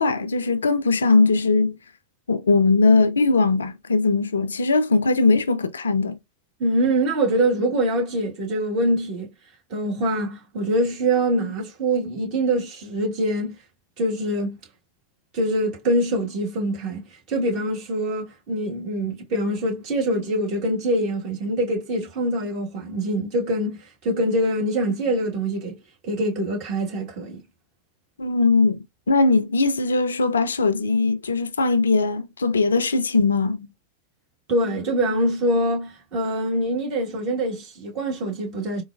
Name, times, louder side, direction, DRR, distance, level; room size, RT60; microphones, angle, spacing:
voice 1, 0.0-1.8 2.3-6.2 28.2-28.8 29.1-33.7, left 3 dB, 70° left, 0.4 m, -20 dB
voice 2, 6.6-9.3 9.7-13.5 14.0-14.6 15.3-25.8 26.0-27.4 34.5-38.8, right 1 dB, 40° right, 1.4 m, -24 dB
3.9 x 2.2 x 2.3 m
figure-of-eight pair, 90°, 0 cm